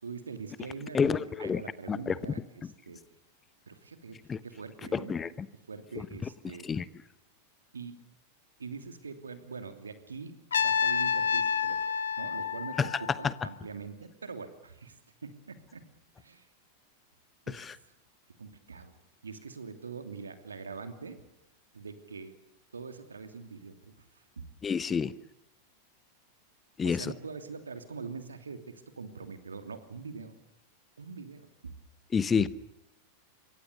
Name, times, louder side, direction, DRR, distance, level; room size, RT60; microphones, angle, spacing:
voice 1, 0.0-3.0 3.7-5.2 5.7-6.7 7.7-8.0 8.6-11.9 12.2-15.0 15.2-15.9 16.2-16.5 17.5-17.8 18.4-19.0 19.2-21.2 21.7-22.4 22.7-24.5 26.8-30.3 31.0-31.7 32.4-32.5, right 5 dB, 75° right, 8 dB, 2.8 m, -43 dB
voice 2, 0.9-1.6 1.9-2.1 4.3-4.4 4.9-5.3 6.7-6.8 12.8-12.9 17.6-17.7 24.6-25.1 26.8-27.1 32.1-32.5, left 6 dB, 20° left, 18 dB, 1.0 m, -28 dB
Trumpet, 10.5-13.5, left 7 dB, 70° left, 1.4 m, -29 dB
27.0 x 24.0 x 6.9 m, 0.89 s
figure-of-eight pair, 90°, 0 cm